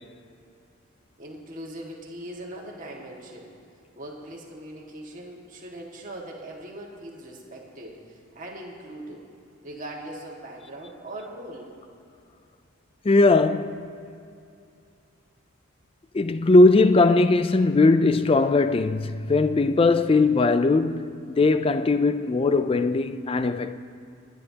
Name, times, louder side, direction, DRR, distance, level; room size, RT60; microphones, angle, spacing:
voice 1, 1.2-3.5 4.0-9.2 9.6-11.7, right 1 dB, 35° right, 1.8 m, -40 dB
voice 2, 13.0-13.9 16.1-23.8, left 3 dB, 25° left, 0.3 m, -20 dB
28.5 x 9.9 x 2.9 m
head